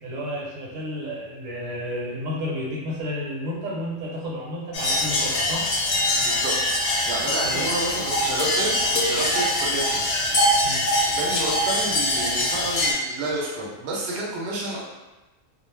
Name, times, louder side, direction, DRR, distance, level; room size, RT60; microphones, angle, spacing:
voice 1, 0.0-5.6 7.4-7.7 10.6-10.8, equal, 75° right, -5 dB, 1.1 m, -31 dB
sound 1, 4.7-12.9, left 1 dB, 70° left, 0.8 m, -23 dB
voice 2, 6.1-6.5 7.0-10.0 11.1-14.8, right 2 dB, 60° right, -4 dB, 0.7 m, -30 dB
2.4 x 2.0 x 3.1 m, 1.1 s
omnidirectional pair, 1.4 m